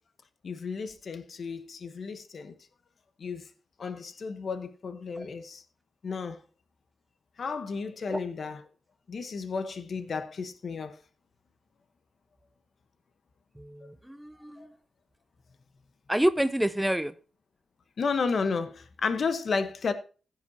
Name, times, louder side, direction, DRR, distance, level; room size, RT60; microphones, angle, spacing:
voice 1, 0.4-2.5 3.2-3.5 3.8-5.6 6.0-6.4 7.4-8.6 9.1-10.9 13.8-13.9 14.6-14.7 18.0-19.9, left 5 dB, 55° left, 1.1 m, -32 dB
voice 2, 13.6-14.7 16.1-17.2, right 1 dB, 5° right, 0.5 m, -28 dB
15.5 x 8.1 x 2.8 m
cardioid pair, 95°, 0 cm